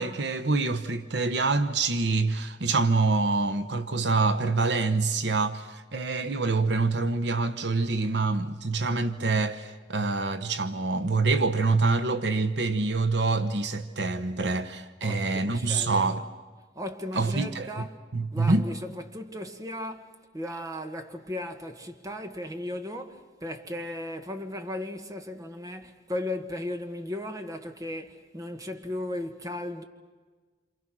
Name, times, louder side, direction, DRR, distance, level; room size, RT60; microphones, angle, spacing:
voice 1, 0.0-16.2 17.1-17.9 18.1-18.7, right 3 dB, 70° right, 1.0 m, -26 dB
voice 2, 15.0-16.3 16.7-18.0 18.3-29.8, left 1 dB, 20° right, 1.7 m, -36 dB
28.0 x 27.5 x 6.2 m
head